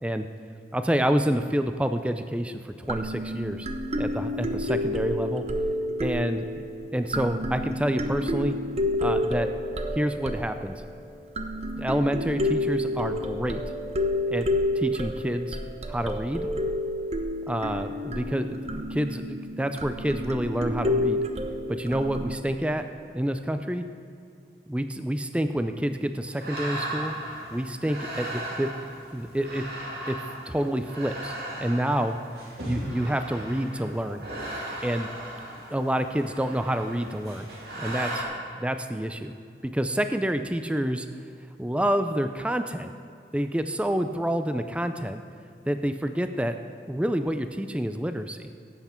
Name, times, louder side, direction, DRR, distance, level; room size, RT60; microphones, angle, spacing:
voice 1, 0.7-3.7 4.0-5.4 6.0-6.6 6.9-8.6 9.0-9.5 10.0-10.8 11.8-13.6 14.3-14.5 14.8-15.6 15.9-16.5 17.5-21.2 21.7-22.9 23.1-23.9 24.7-27.2 27.5-28.7 29.1-29.6 30.1-30.2 30.5-32.2 32.6-34.3 34.8-35.1 35.7-37.5 37.8-38.2 38.6-39.3 39.6-41.1 41.6-42.9 43.3-45.2 45.7-46.6 46.9-48.5, right 1 dB, 5° right, 8 dB, 0.4 m, -28 dB
sound 1, 2.8-10.9 11.4-22.4, left 1 dB, 35° right, 0.7 m, -29 dB
sound 2, 26.3-38.2, right 1 dB, 65° right, 2.6 m, -37 dB
17.5 x 8.2 x 4.4 m, 2.4 s
head